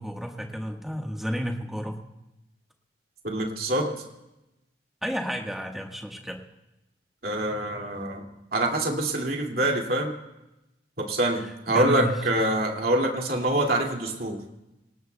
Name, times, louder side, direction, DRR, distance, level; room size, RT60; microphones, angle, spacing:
voice 1, 0.0-2.0 5.0-6.4 11.4-12.1, equal, ahead, 1 dB, 1.5 m, -31 dB
voice 2, 3.2-4.0 7.2-8.3 8.5-10.1 11.0-14.4, right 1 dB, 50° right, 1 dB, 2.5 m, -25 dB
27.0 x 18.5 x 2.3 m, 0.95 s
head